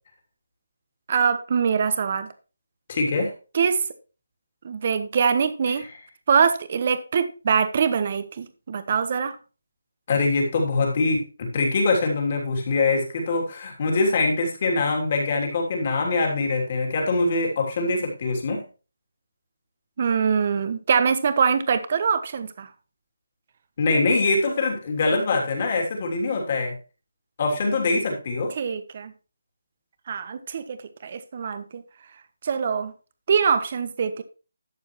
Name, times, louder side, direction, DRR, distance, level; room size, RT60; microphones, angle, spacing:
voice 1, 1.1-2.3 3.5-3.8 4.6-5.8 6.3-9.4 20.0-22.7 28.6-29.1 30.1-31.8 32.4-32.9 33.3-34.2, right 6 dB, 35° right, 1.1 m, -23 dB
voice 2, 2.9-3.3 10.1-18.6 23.8-26.8 27.4-28.5, left 3 dB, 35° left, 3.1 m, -23 dB
12.0 x 7.9 x 3.2 m
figure-of-eight pair, 170°, 0 cm